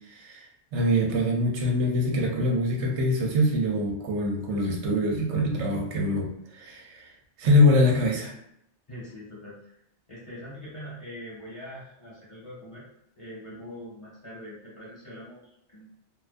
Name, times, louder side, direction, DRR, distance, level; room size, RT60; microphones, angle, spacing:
voice 1, 0.1-0.4 0.7-7.0 7.4-8.3, left 1 dB, 85° right, 1 dB, 0.9 m, -24 dB
voice 2, 8.9-9.7 10.1-12.9 13.2-15.9, equal, 30° left, -8 dB, 0.9 m, -43 dB
2.2 x 2.2 x 2.4 m, 0.74 s
omnidirectional pair, 1.2 m